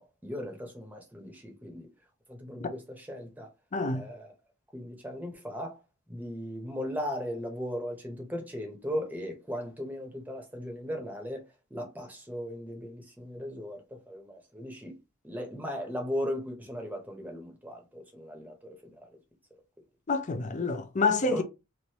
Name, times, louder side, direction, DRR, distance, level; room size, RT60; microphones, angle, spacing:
voice 1, 0.0-1.9 2.3-3.5 3.9-4.3 4.7-5.8 6.1-11.4 11.7-14.9 15.2-19.1 21.3-21.4, equal, 10° right, 0.8 m, -37 dB
voice 2, 3.7-4.0 20.1-21.4, left 3 dB, 35° left, 0.4 m, -28 dB
3.1 x 2.6 x 2.9 m
head